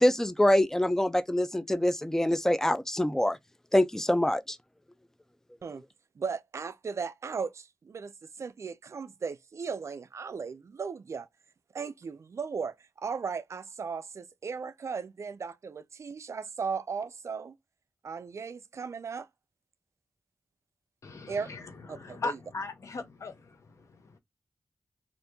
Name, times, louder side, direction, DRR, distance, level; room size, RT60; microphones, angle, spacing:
voice 1, 0.0-3.4 3.7-4.6, left 1 dB, 10° left, 0.5 m, -25 dB
voice 2, 6.2-11.3 11.7-17.5 18.0-19.3 21.3-21.6 21.9-22.4, right 5 dB, 65° right, 0.4 m, -36 dB
voice 3, 21.0-21.6 21.9-24.2, left 3 dB, 70° left, 0.7 m, -39 dB
2.9 x 2.5 x 3.5 m
cardioid pair, 50°, 5 cm